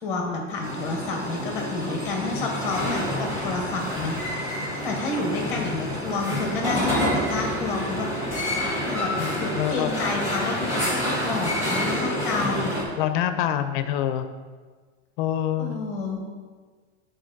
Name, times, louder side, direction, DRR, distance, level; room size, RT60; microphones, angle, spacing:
voice 1, 0.0-4.2 4.6-8.1 8.8-9.1 9.4-12.8 15.6-16.2, left 3 dB, 5° left, 1 dB, 0.7 m, -30 dB
sound 1, 0.6-12.8, left 1 dB, 10° right, 1.2 m, -28 dB
voice 2, 9.1-9.9 13.0-14.3 15.2-15.8, left 11 dB, 45° left, 10 dB, 0.4 m, -26 dB
8.6 x 3.8 x 3.9 m, 1.5 s
supercardioid pair, 165°, 36 cm